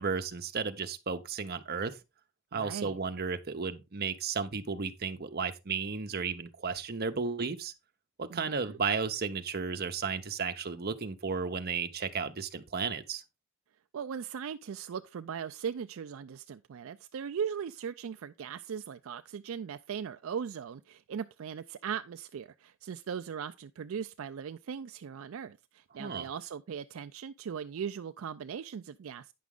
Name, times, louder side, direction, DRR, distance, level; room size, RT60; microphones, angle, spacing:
voice 1, 0.0-2.0 2.5-7.7 8.2-13.2 26.0-26.3, right 5 dB, 45° right, 0.8 m, -34 dB
voice 2, 2.5-3.0 8.3-8.8 13.9-29.3, right 7 dB, 65° right, 0.4 m, -39 dB
9.3 x 6.0 x 3.7 m
head